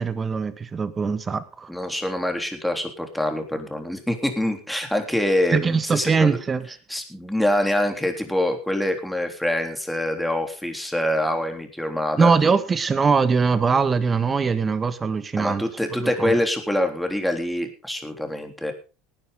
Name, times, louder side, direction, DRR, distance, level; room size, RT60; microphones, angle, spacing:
voice 1, 0.0-1.7 5.5-6.6 12.2-15.6 15.9-16.3, right 5 dB, 25° right, 1.7 m, -22 dB
voice 2, 1.7-6.4 6.9-12.3 15.4-18.7, left 1 dB, 5° left, 3.6 m, -25 dB
18.5 x 9.9 x 3.9 m
hypercardioid pair, 90°, 0 cm